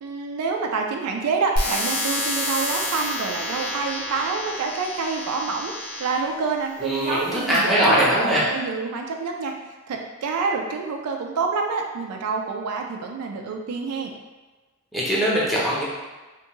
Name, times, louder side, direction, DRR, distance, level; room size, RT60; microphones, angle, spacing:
voice 1, 0.0-9.5 9.9-14.1, right 4 dB, 80° right, 3 dB, 0.4 m, -27 dB
sound 1, 1.6-6.3 7.0-7.6, left 1 dB, 45° left, 0.6 m, -29 dB
voice 2, 6.8-8.5 14.9-15.8, equal, ahead, -8 dB, 0.6 m, -21 dB
2.5 x 2.3 x 2.9 m, 1.2 s
head